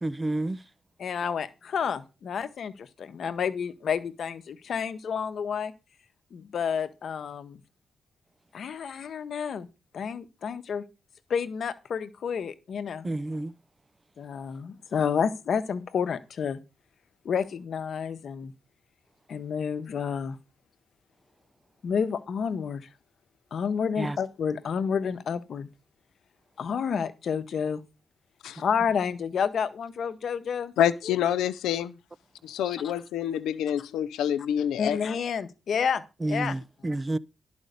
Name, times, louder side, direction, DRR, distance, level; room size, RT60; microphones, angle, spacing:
voice 1, 0.0-0.6 13.0-13.5 24.0-24.2 36.2-37.2, right 2 dB, 25° right, 0.5 m, -30 dB
voice 2, 1.0-5.7 6.3-7.6 8.5-9.7 9.9-10.8 11.3-13.1 14.2-16.6 17.2-18.5 19.3-20.4 21.8-22.9 23.5-25.7 26.6-27.8 28.6-30.7 31.0-31.2 32.6-32.8 34.8-36.0 36.3-36.6, left 7 dB, 70° left, 0.9 m, -30 dB
voice 3, 30.8-31.9 32.4-35.0, left 10 dB, 90° left, 0.5 m, -27 dB
11.0 x 5.2 x 6.6 m
supercardioid pair, 45°, 0 cm